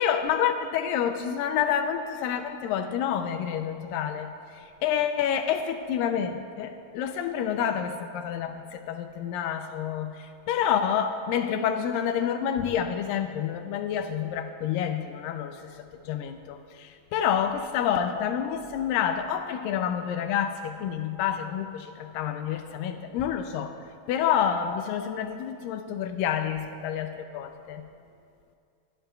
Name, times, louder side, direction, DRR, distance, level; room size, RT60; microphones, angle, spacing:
voice 1, 0.0-27.8, left 8 dB, 80° left, 7 dB, 2.1 m, -28 dB
23.5 x 12.0 x 2.3 m, 2.4 s
omnidirectional pair, 4.3 m